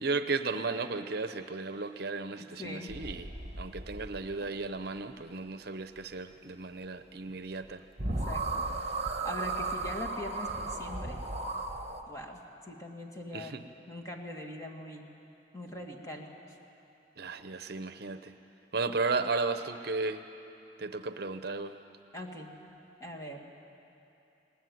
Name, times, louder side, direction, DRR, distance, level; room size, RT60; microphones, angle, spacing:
voice 1, 0.0-3.3 3.6-7.8 13.3-13.6 17.2-18.4 18.7-20.2 20.8-21.8, right 3 dB, 60° right, 10 dB, 0.8 m, -34 dB
voice 2, 2.4-2.9 8.0-8.7 9.2-11.2 12.1-13.6 13.9-15.1 15.5-16.3 22.1-22.5 23.0-23.4, left 1 dB, 15° left, 1 dB, 2.2 m, -41 dB
sound 1, 2.9-4.5 7.6-7.7 8.0-12.0, right 3 dB, 35° right, 1.6 m, -35 dB
21.5 x 19.5 x 9.5 m, 2.8 s
head